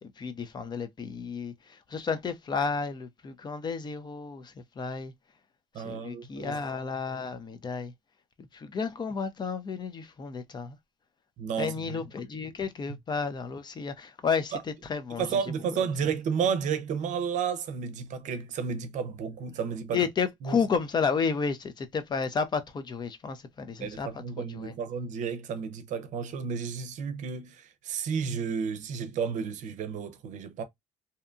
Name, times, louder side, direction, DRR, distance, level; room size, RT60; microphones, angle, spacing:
voice 1, 0.0-5.1 5.8-7.9 8.5-10.8 11.6-15.4 19.9-24.1 24.4-24.8, left 5 dB, 30° left, 0.5 m, -32 dB
voice 2, 5.7-6.6 11.4-12.0 14.5-14.6 15.2-20.0 20.4-20.6 23.8-30.6, right 6 dB, 65° right, 0.6 m, -32 dB
2.7 x 2.2 x 2.4 m
cardioid pair, 95°, 14 cm